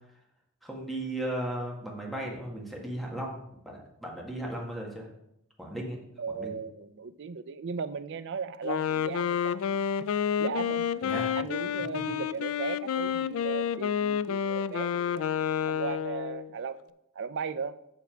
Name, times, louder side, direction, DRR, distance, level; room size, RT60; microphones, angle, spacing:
voice 1, 0.6-5.1 5.6-6.0 6.3-6.6 11.0-11.3, right 1 dB, ahead, -1 dB, 1.6 m, -36 dB
voice 2, 6.2-9.8 10.4-10.9 11.3-15.2 15.7-16.8 17.2-17.7, right 5 dB, 55° right, 13 dB, 0.4 m, -37 dB
Wind instrument woodwind instrument, 8.6-16.5, left 8 dB, 70° left, 0.3 m, -29 dB
7.3 x 6.8 x 4.5 m, 0.79 s
head